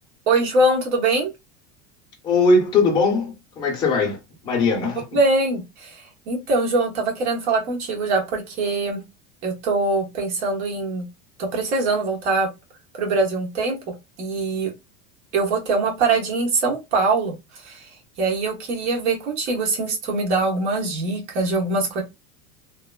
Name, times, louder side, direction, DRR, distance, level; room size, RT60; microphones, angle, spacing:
voice 1, 0.3-1.3 4.8-4.9 5.1-9.0 9.4-11.1 11.4-12.5 13.0-13.8 14.2-14.7 15.3-17.3 17.6-17.8 18.2-22.0, right 3 dB, 90° right, 1.2 m, -23 dB
voice 2, 2.2-5.0, left 3 dB, 15° left, 0.5 m, -20 dB
2.9 x 2.0 x 2.2 m
cardioid pair, 170°, 33 cm